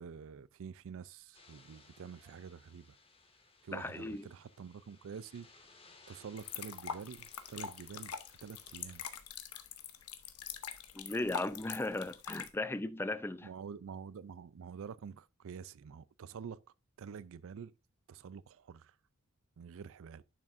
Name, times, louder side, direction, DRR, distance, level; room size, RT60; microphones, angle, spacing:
voice 1, 0.0-3.0 3.6-5.5 6.1-9.1 13.4-16.6 17.0-17.7 18.1-18.9 19.6-20.2, right 6 dB, 65° right, 0.4 m, -47 dB
sound 1, 1.3-9.1, left 3 dB, 25° left, 1.7 m, -62 dB
voice 2, 3.7-4.3 10.9-13.5, left 2 dB, 10° left, 0.4 m, -37 dB
sound 2, 6.4-12.5, left 7 dB, 85° left, 1.0 m, -44 dB
10.5 x 6.1 x 2.5 m
head